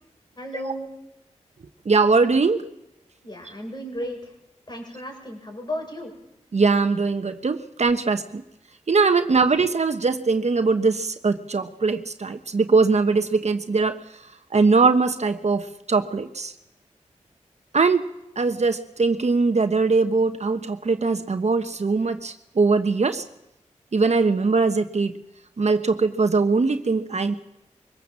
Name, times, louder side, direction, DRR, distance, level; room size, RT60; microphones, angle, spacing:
voice 1, 0.4-0.9 3.2-4.3 4.7-6.1, equal, 35° left, 3 dB, 7.1 m, -34 dB
voice 2, 1.8-2.6 6.5-8.4 8.9-14.0 14.5-16.5 17.7-18.1 18.4-23.2 23.9-25.2 25.6-27.3, right 4 dB, 60° right, 8 dB, 1.2 m, -21 dB
23.0 x 18.5 x 7.6 m, 0.87 s
cardioid pair, 45°, 13 cm